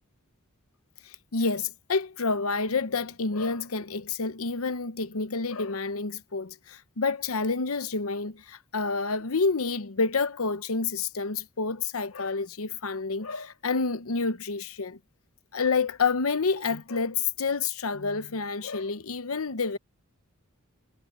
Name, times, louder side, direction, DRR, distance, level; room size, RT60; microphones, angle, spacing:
voice 1, 1.0-15.0 15.5-19.8, left 4 dB, 80° left, 0.9 m, -29 dB
head